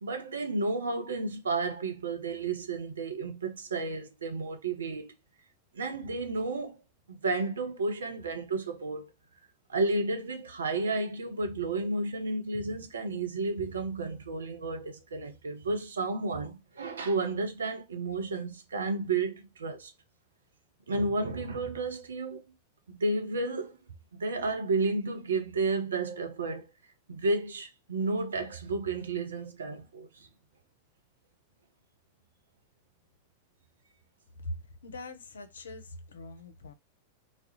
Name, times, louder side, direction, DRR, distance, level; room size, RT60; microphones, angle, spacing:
voice 1, 0.0-5.2 5.7-6.8 7.1-9.1 9.7-19.9 20.9-22.4 22.9-23.8 24.1-26.6 27.1-30.1, right 3 dB, 70° right, 0.5 m, -32 dB
voice 2, 34.8-36.7, left 1 dB, 70° left, 0.4 m, -42 dB
2.3 x 2.0 x 2.8 m
figure-of-eight pair, 90°, 0 cm